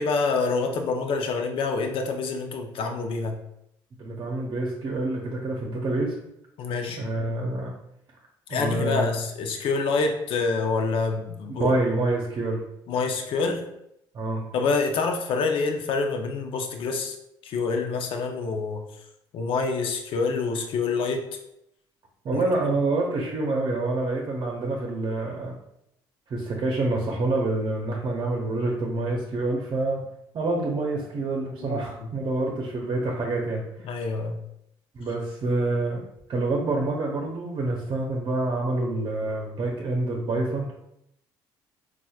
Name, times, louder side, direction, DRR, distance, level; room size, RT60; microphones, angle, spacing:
voice 1, 0.0-3.4 6.6-7.0 8.5-11.7 12.9-13.6 14.5-17.1 17.4-18.8 19.3-21.2 22.3-22.4 31.6-31.9 33.8-34.4, left 4 dB, 65° left, 4 dB, 0.6 m, -26 dB
voice 2, 4.0-6.1 7.0-7.7 8.5-9.2 11.6-12.6 14.1-14.4 22.2-25.6 26.3-30.0 30.3-33.6 34.9-36.0 36.3-40.7, right 2 dB, 50° right, -1 dB, 0.7 m, -27 dB
4.1 x 2.4 x 2.4 m, 0.79 s
supercardioid pair, 80°, 10 cm